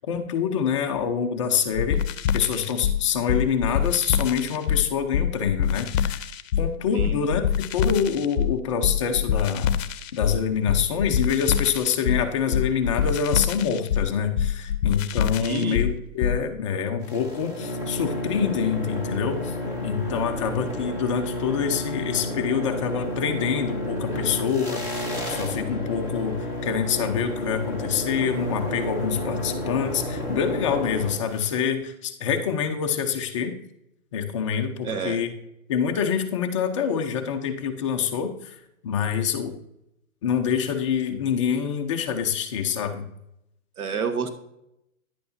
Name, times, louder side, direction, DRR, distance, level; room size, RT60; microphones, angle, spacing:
voice 1, 0.1-2.0 2.3-6.2 6.6-9.7 10.1-19.5 19.8-33.6 34.1-35.3 35.7-38.6 38.8-39.6 40.2-43.0, left 7 dB, 20° left, 4 dB, 0.5 m, -26 dB
sound 1, 1.7-16.4, left 9 dB, 60° left, 0.7 m, -25 dB
voice 2, 15.4-15.8 34.8-35.2 43.8-44.3, right 5 dB, 80° right, 8 dB, 1.4 m, -29 dB
sound 2, 17.0-31.6, left 1 dB, 10° right, 0.8 m, -31 dB
10.5 x 8.4 x 2.7 m, 0.82 s
hypercardioid pair, 155°, 43 cm